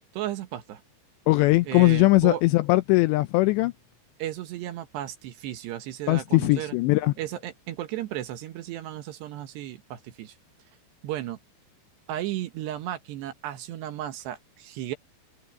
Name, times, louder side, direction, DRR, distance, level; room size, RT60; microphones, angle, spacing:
voice 1, 0.1-0.8 1.6-2.4 4.2-6.8 7.2-10.4 11.0-11.4 12.1-15.0, right 13 dB, 70° right, 3.1 m, -34 dB
voice 2, 1.3-3.7 6.1-7.1, left 20 dB, 85° left, 2.6 m, -20 dB
omnidirectional pair, 5.5 m